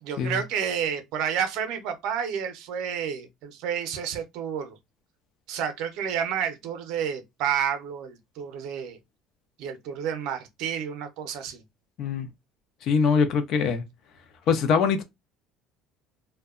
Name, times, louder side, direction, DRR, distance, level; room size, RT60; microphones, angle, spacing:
voice 1, 0.0-4.8 5.5-9.0 9.6-11.6, right 8 dB, 60° right, 0.5 m, -30 dB
voice 2, 12.8-13.8 14.5-15.0, left 6 dB, 40° left, 0.4 m, -23 dB
2.7 x 2.1 x 2.3 m
cardioid pair, 180°, 0 cm